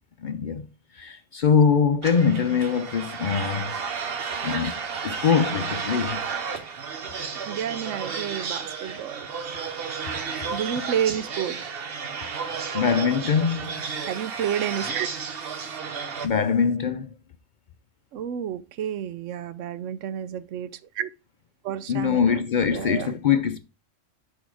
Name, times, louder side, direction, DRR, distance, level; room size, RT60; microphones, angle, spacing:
voice 1, 0.2-0.7 0.9-3.8 4.4-6.2 12.7-13.8 16.2-17.1 21.9-23.6, left 6 dB, 55° left, 0.5 m, -23 dB
sound 1, 2.0-16.3, right 5 dB, 55° right, 1.1 m, -32 dB
voice 2, 7.5-9.3 10.5-11.6 14.0-15.1 18.1-21.1 21.6-23.1, right 9 dB, 90° right, 1.0 m, -30 dB
6.2 x 5.1 x 4.6 m
omnidirectional pair, 1.2 m